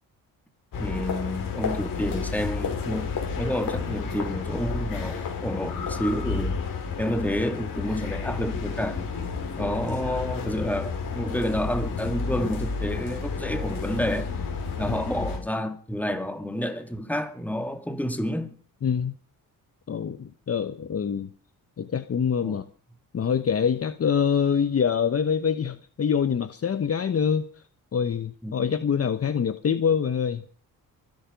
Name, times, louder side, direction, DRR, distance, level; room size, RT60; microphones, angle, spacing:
sound 1, 0.7-15.4, left 5 dB, 65° left, 5.7 m, -31 dB
voice 1, 0.7-6.6 7.0-9.0 9.6-14.3 14.8-18.5 22.4-22.6 28.4-28.5, equal, 5° left, 2.5 m, -29 dB
voice 2, 18.8-19.1 19.9-21.3 21.8-22.6 23.1-27.5 27.9-30.4, left 7 dB, 40° left, 1.1 m, -25 dB
23.5 x 10.5 x 5.3 m
cardioid pair, 95°, 36 cm